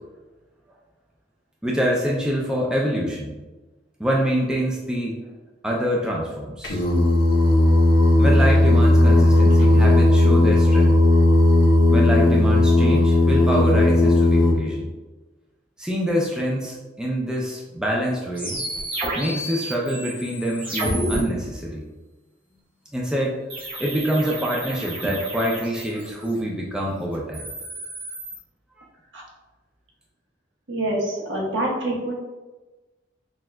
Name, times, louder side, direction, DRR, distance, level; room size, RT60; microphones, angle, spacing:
voice 1, 1.6-3.3 4.0-5.2 5.6-6.8 8.2-11.0 11.9-14.9 15.8-18.6 19.1-21.9 22.9-23.4 23.8-27.5, equal, 5° right, -3 dB, 0.4 m, -25 dB
Singing, 6.6-14.5, left 1 dB, 80° left, 0.8 m, -16 dB
sound 1, 18.3-21.2 23.5-26.3 27.1-28.4, right 1 dB, 25° right, 0.9 m, -31 dB
voice 2, 30.7-32.1, right 1 dB, 85° right, -3 dB, 1.1 m, -26 dB
6.0 x 2.4 x 2.2 m, 1.2 s
head